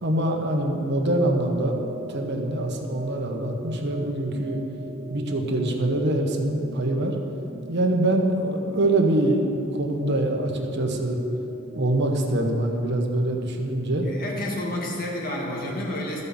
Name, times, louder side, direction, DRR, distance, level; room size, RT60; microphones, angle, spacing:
voice 1, 0.0-4.6 5.1-7.2 7.7-11.2 11.7-14.1, right 1 dB, 60° right, 2 dB, 1.1 m, -24 dB
sound 1, 1.1-13.0, right 1 dB, 30° right, 0.4 m, -40 dB
voice 2, 14.0-16.2, left 1 dB, 45° left, -2 dB, 1.9 m, -30 dB
13.0 x 5.4 x 7.0 m, 2.8 s
head